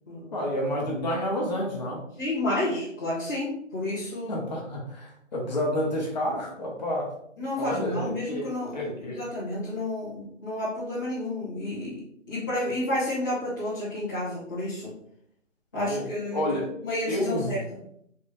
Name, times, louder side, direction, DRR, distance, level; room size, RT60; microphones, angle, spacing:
voice 1, 0.3-2.0 4.3-7.1 7.6-9.2 15.7-16.7 17.1-17.6, equal, 35° left, -3 dB, 1.0 m, -30 dB
voice 2, 2.2-4.5 7.4-8.8 9.2-12.0 12.3-14.9 15.7-16.4 16.8-17.6, left 1 dB, 15° left, -13 dB, 0.7 m, -30 dB
3.3 x 3.3 x 3.0 m, 0.71 s
figure-of-eight pair, 160°, 39 cm